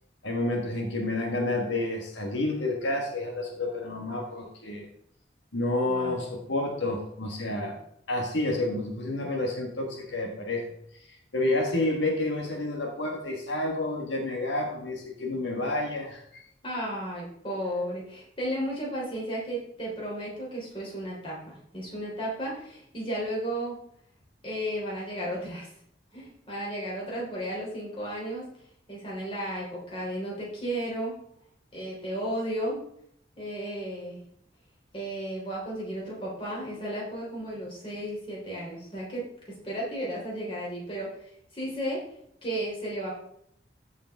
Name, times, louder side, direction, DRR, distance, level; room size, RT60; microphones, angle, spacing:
voice 1, 0.2-4.9 5.5-7.8 8.1-10.7 11.3-16.4, left 2 dB, 80° left, 1 dB, 1.4 m, -29 dB
voice 2, 5.9-6.2 16.6-23.8 24.4-25.7 26.1-28.5 28.9-31.2 31.7-32.8 33.4-34.2 34.9-41.1 41.5-42.0 42.4-43.1, right 1 dB, 30° left, -4 dB, 3.2 m, -34 dB
14.0 x 5.0 x 3.5 m, 0.71 s
head